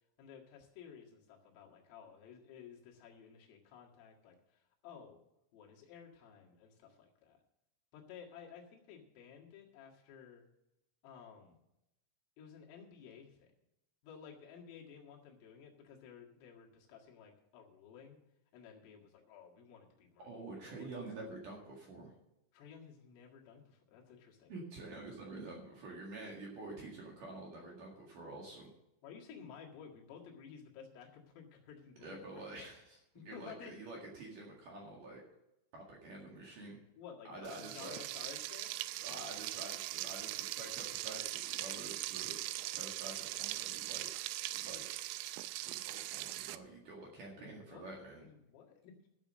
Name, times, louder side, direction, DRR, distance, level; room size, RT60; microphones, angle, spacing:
voice 1, 0.2-5.2 5.5-7.4 7.9-10.4 11.0-11.6 12.4-13.5 14.0-18.2 18.5-20.3 20.6-20.9 22.5-24.5 29.0-32.7 33.2-33.7 37.0-38.7 47.4-47.9 48.2-49.1, left 7 dB, 75° left, -1 dB, 4.5 m, -54 dB
voice 2, 20.2-22.1 24.5-28.7 32.0-35.2 35.7-36.8 37.3-38.0 39.0-42.4 42.7-44.1 44.5-44.9 45.7-48.2, right 2 dB, 55° right, -2 dB, 2.7 m, -48 dB
Frying (food), 37.4-46.6, right 17 dB, 85° right, 3.2 m, -41 dB
13.5 x 7.2 x 6.3 m, 0.88 s
omnidirectional pair, 6.0 m